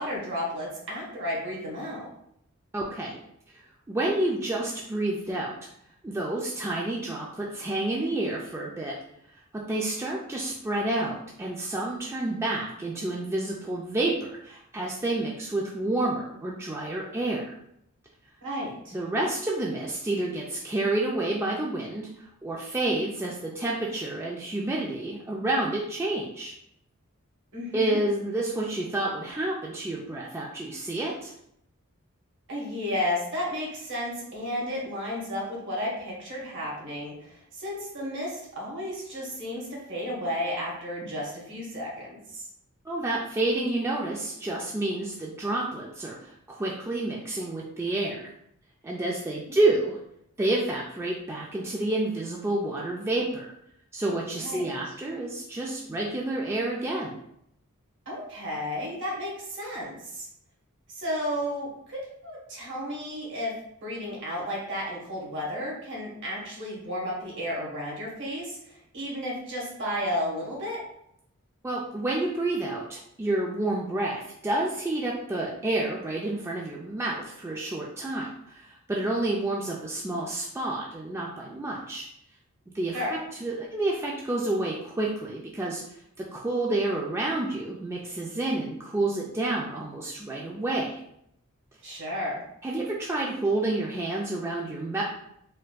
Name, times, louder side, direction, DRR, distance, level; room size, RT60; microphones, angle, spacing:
voice 1, 0.0-2.1 18.4-19.0 27.5-28.0 32.5-42.4 54.3-54.7 58.0-60.3 60.9-63.5 63.8-70.8 82.9-83.1 91.8-92.4, left 1 dB, 60° right, -3 dB, 1.3 m, -33 dB
voice 2, 2.7-3.2 3.5-5.5 6.0-8.9 9.5-17.4 18.9-26.5 27.7-31.3 42.9-48.3 48.8-50.0 50.4-53.5 53.9-57.2 71.6-82.1 82.7-83.0 83.4-85.8 86.2-91.0 92.6-95.0, right 2 dB, 10° right, -3 dB, 0.3 m, -29 dB
4.3 x 2.5 x 2.3 m, 0.74 s
head